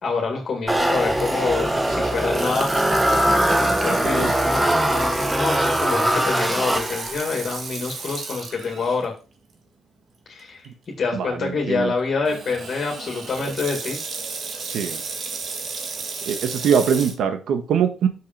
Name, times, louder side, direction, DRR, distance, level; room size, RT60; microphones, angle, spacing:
voice 1, 0.0-2.7 3.5-9.1 10.3-10.7 11.0-14.0, left 4 dB, 50° left, 1 dB, 2.3 m, -26 dB
sound 1, 0.7-7.3, right 1 dB, 10° right, 0.9 m, -21 dB
Water tap faucet / Sink (filling or washing), 0.7-9.1 9.5-9.6 10.4-10.7 12.2-17.1, right 4 dB, 55° right, 1.7 m, -34 dB
voice 2, 3.9-4.3 11.1-11.9 14.6-15.0 16.2-18.1, right 7 dB, 70° right, 8 dB, 1.4 m, -23 dB
6.5 x 5.1 x 5.3 m, 0.34 s
cardioid pair, 90°, 0 cm